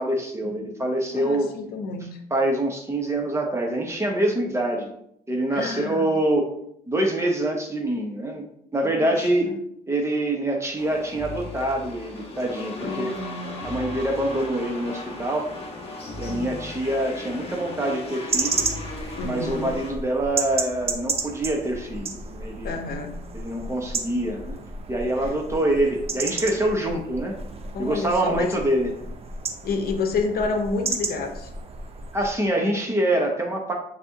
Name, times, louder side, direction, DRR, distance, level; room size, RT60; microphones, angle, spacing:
voice 1, 0.0-1.5 2.3-4.9 5.3-6.5 6.9-8.4 8.7-9.5 9.9-13.1 13.6-15.5 16.2-18.6 19.2-22.7 23.3-24.6 24.9-27.4 27.8-28.9 32.1-33.7, right 1 dB, 15° right, 1 dB, 1.3 m, -25 dB
voice 2, 1.1-2.2 5.5-6.1 8.8-9.5 12.8-13.7 16.3-16.7 19.2-19.7 22.6-23.2 25.2-25.3 27.7-28.6 29.6-31.5, left 4 dB, 65° left, 4 dB, 1.0 m, -30 dB
sound 1, 10.8-19.9, left 2 dB, 35° left, 1.5 m, -36 dB
sound 2, 18.3-32.4, right 3 dB, 35° right, 0.8 m, -32 dB
9.8 x 3.4 x 2.9 m, 0.71 s
cardioid pair, 115°, 17 cm